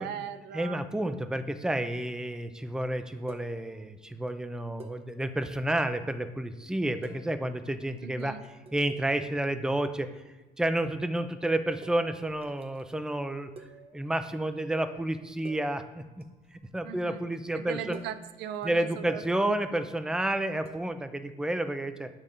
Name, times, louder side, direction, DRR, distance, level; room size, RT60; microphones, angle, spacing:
voice 1, 0.0-0.8 8.0-8.4 16.8-17.2 17.5-19.6, right 9 dB, 80° right, 12 dB, 0.6 m, -39 dB
voice 2, 0.5-8.4 8.7-10.1 10.6-13.5 13.9-16.2 16.5-18.0 18.6-22.1, right 1 dB, 5° right, 9 dB, 0.5 m, -30 dB
sound 1, 3.3-4.1 4.8-6.2 6.8-9.6 9.8-10.3 10.6-10.7 11.8-13.1 13.5-14.3 14.5-14.7 15.2-15.3 15.4-17.0 17.8-19.5 20.6-21.0, right 2 dB, 35° right, 0.9 m, -52 dB
9.8 x 3.6 x 6.6 m, 1.2 s
cardioid pair, 110°, 17 cm